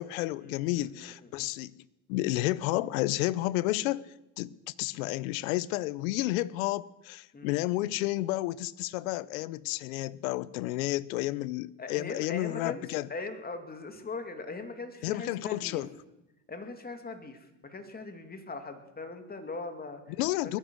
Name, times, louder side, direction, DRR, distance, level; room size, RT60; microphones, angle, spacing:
voice 1, 0.0-1.7 2.1-4.1 4.4-13.1 15.0-15.9 20.2-20.6, left 17 dB, 80° left, 0.7 m, -31 dB
voice 2, 11.8-12.8 13.1-15.8 16.5-20.0 20.4-20.6, left 3 dB, 20° left, 2.5 m, -40 dB
21.0 x 10.0 x 6.4 m
supercardioid pair, 95°, 41 cm